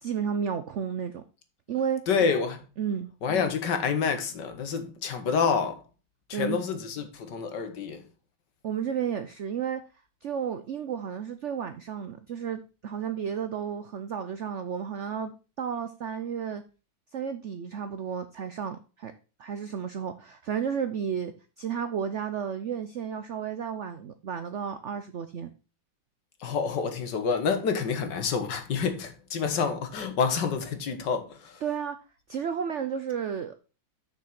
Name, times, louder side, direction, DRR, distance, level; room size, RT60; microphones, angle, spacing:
voice 1, 0.0-1.2 1.7-2.0 2.8-3.1 6.3-6.6 8.6-9.8 10.2-16.6 17.1-19.1 19.4-25.5 31.6-32.0 32.3-33.6, right 7 dB, 90° right, 0.6 m, -32 dB
voice 2, 2.1-2.6 3.2-5.8 6.3-8.0 26.4-31.6, left 6 dB, 65° left, 1.9 m, -28 dB
6.7 x 6.0 x 5.8 m
omnidirectional pair, 2.1 m